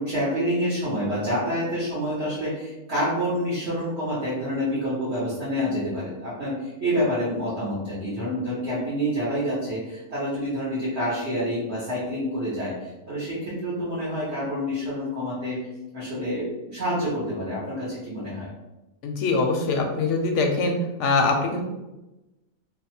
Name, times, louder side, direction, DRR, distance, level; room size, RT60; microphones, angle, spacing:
voice 1, 0.0-15.6 15.9-18.5, equal, 50° right, -11 dB, 1.4 m, -28 dB
voice 2, 19.0-20.7 21.0-21.6, left 3 dB, 65° left, 2 dB, 0.9 m, -23 dB
3.3 x 2.2 x 4.2 m, 1.0 s
omnidirectional pair, 1.4 m